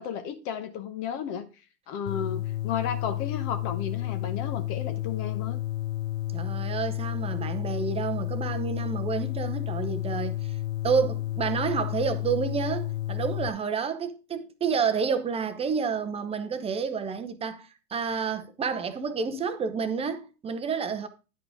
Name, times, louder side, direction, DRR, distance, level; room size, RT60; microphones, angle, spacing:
voice 1, 0.0-1.5 1.9-5.6, left 8 dB, 40° left, 1.0 m, -33 dB
sound 1, 2.1-13.5, left 15 dB, 60° left, 0.8 m, -31 dB
voice 2, 6.3-10.5 10.8-21.1, right 6 dB, 15° right, 0.8 m, -29 dB
10.0 x 4.8 x 4.9 m
hypercardioid pair, 115°, 44 cm